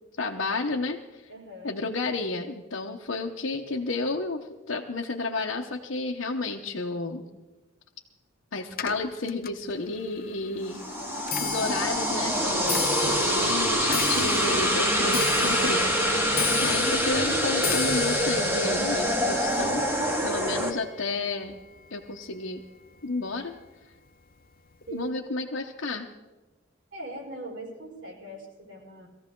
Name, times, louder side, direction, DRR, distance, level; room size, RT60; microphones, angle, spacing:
voice 1, 0.2-1.2 1.6-7.3 8.5-10.8 11.4-19.9 20.2-21.5 21.9-22.6 23.0-23.6 24.9-26.1, left 3 dB, 75° left, -2 dB, 1.0 m, -31 dB
voice 2, 1.3-1.8 10.8-11.8 24.9-25.2 26.9-29.1, right 2 dB, 70° right, -2 dB, 4.5 m, -42 dB
Clock, 8.7-22.1 22.4-22.9 23.7-23.8 24.1-24.5 24.7-24.8, left 6 dB, 50° left, 0.7 m, -35 dB
sound 1, 10.7-20.7, equal, 10° right, 1.8 m, -25 dB
20.0 x 14.5 x 3.8 m, 1.1 s
head